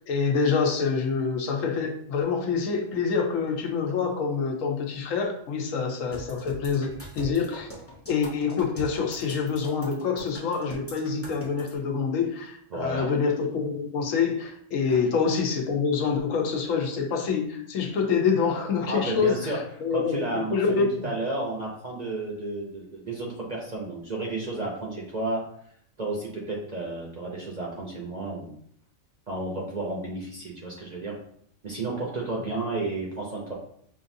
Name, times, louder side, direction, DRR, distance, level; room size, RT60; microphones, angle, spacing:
voice 1, 0.0-7.7 8.1-21.1 32.5-32.6, left 5 dB, 75° left, 2 dB, 1.1 m, -26 dB
sound 1, 6.1-11.7, equal, 15° left, 0.6 m, -42 dB
voice 2, 12.7-13.1 14.9-15.0 18.9-19.6 19.9-25.4 26.0-28.6 29.3-31.2 31.6-33.5, right 2 dB, 45° right, -3 dB, 0.6 m, -32 dB
5.3 x 2.5 x 2.6 m, 0.67 s
omnidirectional pair, 1.4 m